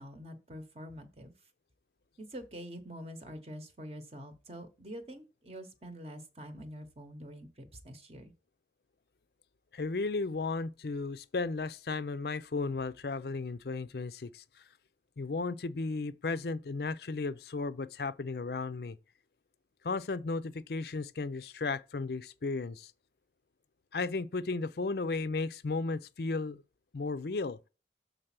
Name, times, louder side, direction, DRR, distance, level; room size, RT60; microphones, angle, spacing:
voice 1, 0.0-1.3 2.2-8.3, equal, 35° right, 0.9 m, -46 dB
voice 2, 9.7-14.4 15.2-19.0 19.8-22.9 23.9-26.6 26.9-27.6, left 3 dB, 60° left, 0.5 m, -34 dB
6.6 x 4.0 x 5.9 m
head